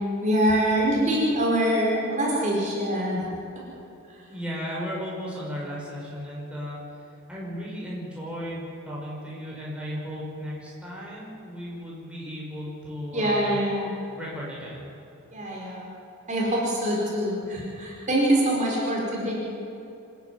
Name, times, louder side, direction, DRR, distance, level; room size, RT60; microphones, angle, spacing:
voice 1, 0.2-3.2 13.1-13.9 15.3-15.9 16.3-19.3, right 1 dB, 35° right, -3 dB, 5.0 m, -24 dB
voice 2, 4.3-6.8 7.3-13.6 14.2-14.9, equal, 5° right, -5 dB, 5.4 m, -35 dB
26.5 x 11.5 x 9.7 m, 2.7 s
head